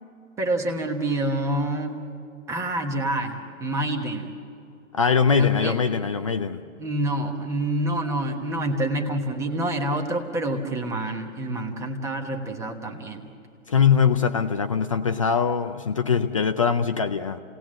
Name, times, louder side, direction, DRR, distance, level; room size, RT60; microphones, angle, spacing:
voice 1, 0.4-2.1 2.5-4.3 5.3-5.8 6.8-13.3, right 1 dB, 5° right, 4 dB, 1.2 m, -27 dB
voice 2, 4.9-6.6 13.7-17.4, left 6 dB, 25° left, 8 dB, 0.5 m, -22 dB
29.5 x 18.5 x 7.6 m, 2.6 s
hypercardioid pair, 155°, 40 cm